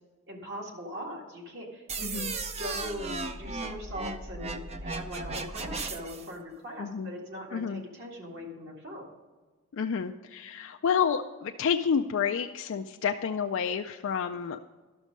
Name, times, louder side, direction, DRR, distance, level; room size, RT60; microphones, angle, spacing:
voice 1, 0.3-2.3 2.5-9.1, equal, 55° right, -1 dB, 2.0 m, -41 dB
sound 1, 1.9-6.3, right 3 dB, 30° right, 0.5 m, -36 dB
voice 2, 2.0-2.3 6.8-7.1 7.5-7.8 9.7-14.7, left 7 dB, 60° left, 4 dB, 0.4 m, -29 dB
12.0 x 6.3 x 5.2 m, 1.3 s
head